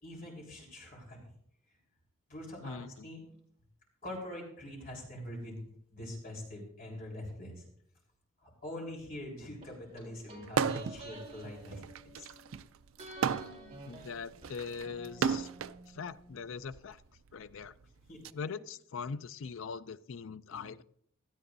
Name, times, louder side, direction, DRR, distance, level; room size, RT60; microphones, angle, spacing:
voice 1, 0.0-1.2 2.3-3.2 4.0-5.6 5.9-7.6 8.4-11.8 12.2-12.3 18.1-18.2 20.5-20.7, left 1 dB, 40° left, -1 dB, 3.9 m, -44 dB
voice 2, 2.6-3.1 13.9-15.5 15.9-17.0 17.3-17.7 18.3-20.8, left 5 dB, 70° left, 15 dB, 0.4 m, -41 dB
sound 1, 9.6-12.6 13.0-16.8 17.1-17.2, right 2 dB, 30° right, 3.5 m, -50 dB
sound 2, 10.5-11.0 11.4-15.8 16.7-18.3, right 6 dB, 75° right, 0.4 m, -34 dB
17.0 x 13.0 x 2.7 m, 0.66 s
head